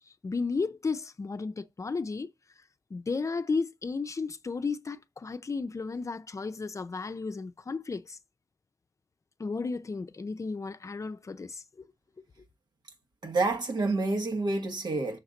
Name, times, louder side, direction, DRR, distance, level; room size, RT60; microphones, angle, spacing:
voice 1, 0.2-2.3 2.9-8.2 9.4-11.9, left 4 dB, 45° left, 0.5 m, -33 dB
voice 2, 13.2-15.2, right 3 dB, 80° right, 1.6 m, -28 dB
6.5 x 4.0 x 6.4 m
wide cardioid pair, 100°, 7 cm